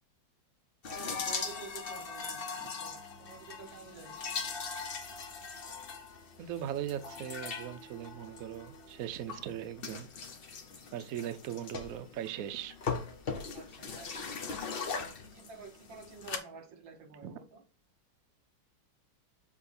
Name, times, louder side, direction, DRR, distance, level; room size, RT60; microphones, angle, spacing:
sound 1, 0.8-16.4, left 5 dB, 85° left, 0.5 m, -40 dB
voice 1, 0.8-4.2 13.5-14.6 15.0-17.6, right 4 dB, 70° right, 1.8 m, -50 dB
voice 2, 6.4-10.1 10.9-12.8 17.2-17.3, right 10 dB, 85° right, 0.7 m, -39 dB
7.2 x 3.1 x 4.2 m
omnidirectional pair, 2.2 m